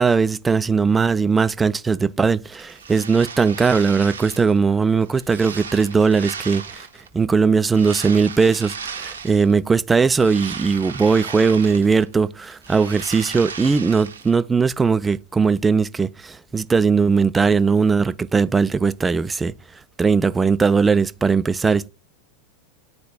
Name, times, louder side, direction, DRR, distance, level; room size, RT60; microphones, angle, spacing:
voice 1, 0.0-6.9 7.1-19.5 20.0-21.9, right 5 dB, 15° right, 0.3 m, -19 dB
sound 1, 2.5-4.6 5.0-7.1 7.7-9.5 9.9-12.1 12.4-14.3, right 6 dB, 70° right, 0.8 m, -35 dB
11.0 x 4.2 x 2.2 m
figure-of-eight pair, 90°, 0 cm